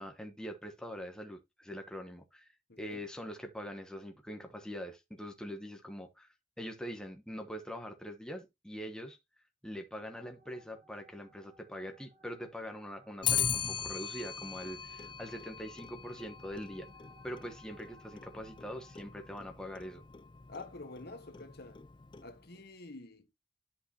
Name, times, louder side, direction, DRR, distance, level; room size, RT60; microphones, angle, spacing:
voice 1, 0.0-2.5 2.8-9.2 9.6-16.9 17.2-20.0, equal, 5° left, 1.1 m, -43 dB
voice 2, 2.7-3.0 20.5-21.8 22.2-23.3, left 3 dB, 60° left, 1.2 m, -48 dB
sound 1, 10.0-19.0, right 1 dB, 45° right, 2.0 m, -64 dB
Clock, 13.2-22.6, left 8 dB, 25° left, 0.4 m, -39 dB
11.0 x 5.5 x 2.8 m
head